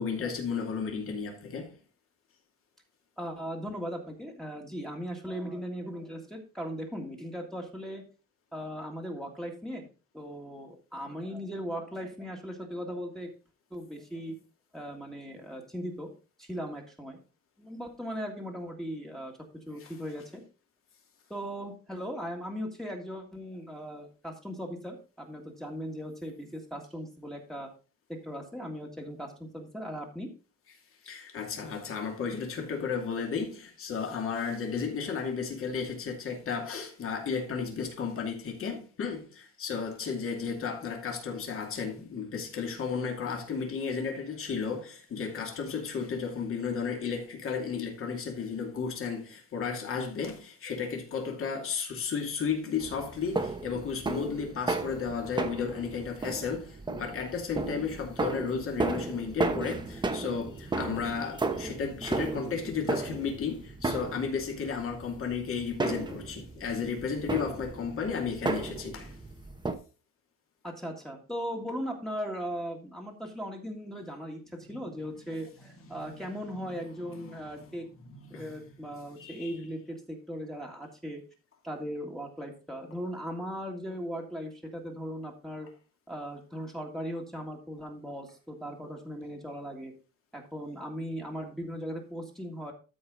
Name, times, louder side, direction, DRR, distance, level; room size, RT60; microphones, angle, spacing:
voice 1, 0.0-1.8 19.8-19.9 31.0-69.2 75.0-75.1 75.9-76.2 76.6-77.5 78.1-78.6 79.2-79.5 82.9-83.0, left 6 dB, 45° left, 2.5 m, -34 dB
voice 2, 3.2-8.0 8.5-9.9 10.1-13.3 13.7-14.3 14.7-16.1 16.4-17.2 17.6-19.3 19.7-20.4 21.3-27.7 28.1-30.3 70.6-77.9 78.3-81.2 81.6-85.7 86.1-89.9 90.3-92.7, equal, ahead, 1.8 m, -38 dB
sound 1, 52.8-69.7, right 3 dB, 15° right, 1.0 m, -34 dB
13.0 x 4.9 x 3.9 m
cardioid pair, 150°, 30 cm